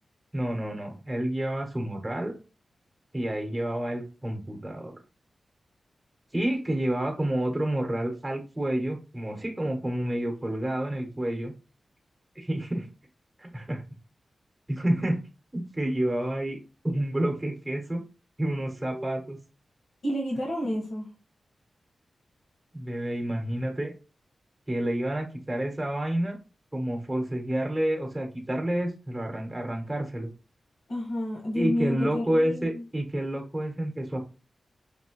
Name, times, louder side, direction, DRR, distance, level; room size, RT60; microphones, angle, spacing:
voice 1, 0.3-2.3 3.1-5.0 6.3-11.5 12.3-12.9 13.4-13.8 14.7-15.2 15.5-16.6 16.8-18.0 18.4-19.4 22.7-23.9 24.7-26.4 26.7-30.3 31.5-34.2, right 1 dB, 15° right, 2 dB, 1.0 m, -29 dB
voice 2, 18.8-19.3 20.0-21.1 30.9-32.8, left 1 dB, 70° left, -1 dB, 1.5 m, -30 dB
5.3 x 2.9 x 3.0 m, 0.32 s
wide cardioid pair, 115°, 0 cm